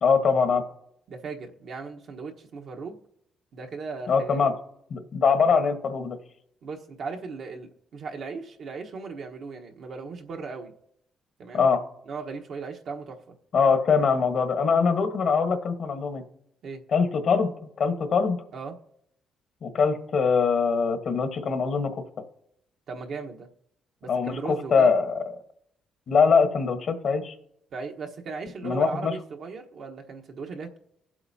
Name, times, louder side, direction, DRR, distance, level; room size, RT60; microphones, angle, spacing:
voice 1, 0.0-0.6 4.1-4.5 4.9-6.2 11.5-11.8 13.5-16.2 16.9-17.5 17.8-18.4 19.6-21.9 24.1-25.2 26.1-27.3 28.6-29.2, left 5 dB, 60° left, 7 dB, 1.3 m, -22 dB
voice 2, 1.1-3.0 3.5-4.5 6.6-10.7 11.4-11.7 12.1-13.3 16.6-16.8 18.5-18.8 22.9-23.5 24.0-24.9 27.7-30.8, right 4 dB, 65° right, 2 dB, 1.2 m, -37 dB
21.5 x 7.9 x 2.8 m, 0.75 s
cardioid pair, 90°, 0 cm